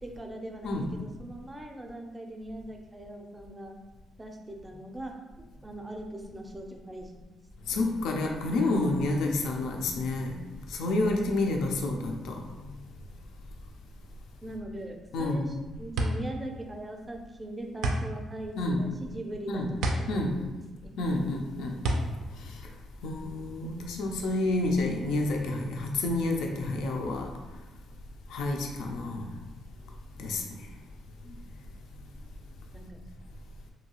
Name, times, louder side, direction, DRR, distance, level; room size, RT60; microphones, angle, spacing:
voice 1, 0.0-3.8 4.2-7.3 14.4-21.0 32.7-33.0, right 1 dB, 20° right, 3 dB, 0.4 m, -41 dB
voice 2, 0.6-0.9 7.7-10.4 10.7-12.5 15.1-15.5 18.6-18.8 19.5-19.7 20.1-20.4 21.0-21.8 22.4-22.7 23.0-27.3 28.3-29.4 30.2-30.7 31.3-31.4, left 2 dB, 85° left, 2 dB, 0.4 m, -29 dB
sound 1, 15.1-23.5, right 1 dB, 85° right, 0.3 m, -32 dB
2.7 x 2.3 x 2.9 m, 1.1 s
cardioid pair, 90°, 0 cm